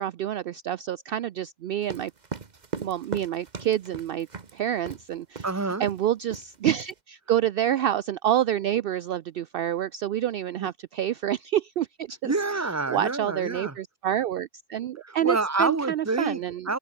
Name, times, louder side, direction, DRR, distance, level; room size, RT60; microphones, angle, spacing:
voice 1, 0.0-2.1 2.8-4.3 4.5-5.5 5.8-12.3 12.9-16.7, right 11 dB, 65° right, 0.7 m, -28 dB
sound 1, 1.8-4.5 4.9-5.0 5.4-5.5 5.8-6.1 6.3-6.9, right 4 dB, 40° right, 1.4 m, -37 dB
voice 2, 5.4-5.9 12.2-13.7 15.0-16.4 16.7-16.8, right 3 dB, 15° right, 1.2 m, -27 dB
omnidirectional pair, 1.1 m